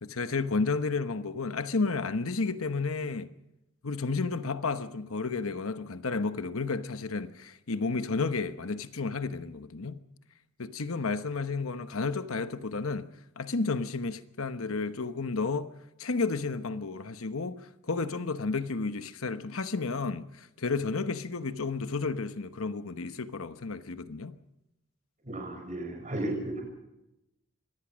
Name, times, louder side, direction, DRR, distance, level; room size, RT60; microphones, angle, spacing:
voice 1, 0.0-3.3 3.8-10.0 10.6-13.1 13.4-15.7 16.0-24.3, left 4 dB, 75° left, 1.1 m, -32 dB
voice 2, 25.2-26.6, right 1 dB, 35° right, 7.0 m, -34 dB
25.0 x 19.0 x 6.3 m
head